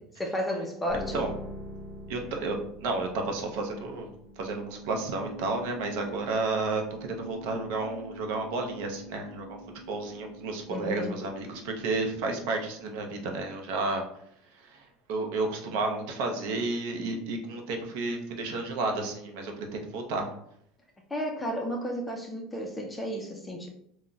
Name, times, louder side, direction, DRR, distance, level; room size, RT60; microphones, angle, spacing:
voice 1, 0.2-1.2 10.7-11.2 21.1-23.7, equal, 5° left, 1 dB, 0.4 m, -32 dB
sound 1, 0.9-13.2, equal, 25° left, 0.8 m, -45 dB
voice 2, 2.1-4.1 4.4-9.6 9.9-14.0 14.6-20.3, right 3 dB, 60° right, 3 dB, 0.5 m, -32 dB
2.3 x 2.0 x 3.8 m, 0.69 s
cardioid pair, 170°, 0 cm